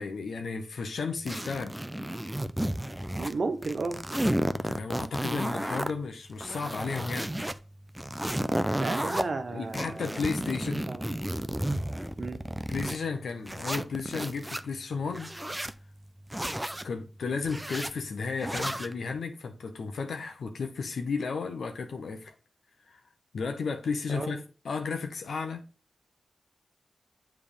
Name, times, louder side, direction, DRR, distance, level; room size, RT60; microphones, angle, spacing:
voice 1, 0.0-1.8 4.5-7.3 9.5-10.9 12.7-15.3 16.8-22.3 22.9-23.0 23.3-24.4 24.6-25.6, left 5 dB, 85° left, 0.9 m, -33 dB
sound 1, 1.3-3.4 3.6-5.9 6.3-7.5 7.9-9.2 9.7-13.0 13.5-14.6 15.1-15.7 16.3-16.9 17.4-17.9 18.4-18.9, right 1 dB, 10° right, 0.5 m, -32 dB
voice 2, 3.2-4.0 8.8-10.1 10.9-11.0 12.2-12.4 24.1-24.4, right 3 dB, 60° right, 1.2 m, -33 dB
7.2 x 3.5 x 5.0 m
cardioid pair, 55°, 0 cm